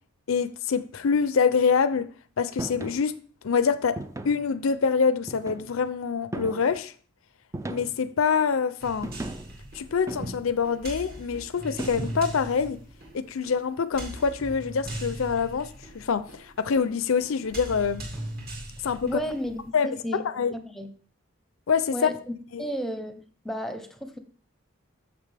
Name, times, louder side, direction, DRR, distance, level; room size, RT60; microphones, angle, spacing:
voice 1, 0.3-2.1 2.4-3.2 3.4-6.9 7.7-9.1 9.7-12.8 13.1-18.0 18.8-19.1 19.7-20.6 21.7-22.1 22.5-22.6, left 6 dB, 75° left, 0.5 m, -25 dB
sound 1, 2.6-3.0 4.0-4.5 5.3-5.8 6.3-6.8 7.5-8.1 9.0-9.6 10.1-10.7 11.8-12.4, right 2 dB, 15° right, 0.4 m, -36 dB
sound 2, 8.8-19.7, right 1 dB, 45° right, 2.0 m, -40 dB
voice 2, 19.0-20.2 20.5-20.9 21.9-22.1 22.6-24.2, equal, ahead, 0.8 m, -33 dB
9.0 x 6.9 x 3.4 m
head